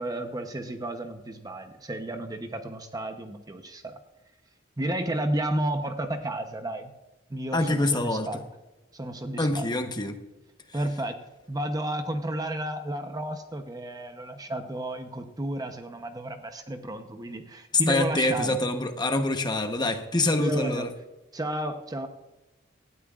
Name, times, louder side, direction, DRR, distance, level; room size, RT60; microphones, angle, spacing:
voice 1, 0.0-3.9 4.8-6.9 7.3-8.4 8.9-9.7 10.7-11.2 11.5-18.6 20.4-20.9 21.3-22.1, right 1 dB, 20° right, 7 dB, 0.8 m, -32 dB
voice 2, 7.5-8.3 9.4-10.2 17.9-20.9, left 2 dB, 20° left, 6 dB, 1.0 m, -26 dB
18.0 x 12.5 x 2.4 m, 1.0 s
head